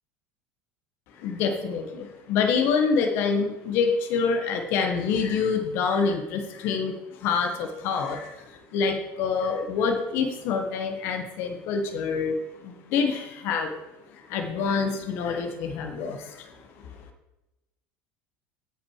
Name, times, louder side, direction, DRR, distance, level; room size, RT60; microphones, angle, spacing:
voice 1, 1.2-12.4 12.6-13.8 14.1-16.9, left 5 dB, 50° left, 5 dB, 1.4 m, -26 dB
16.0 x 6.1 x 4.9 m, 1.0 s
cardioid pair, 175°, 5 cm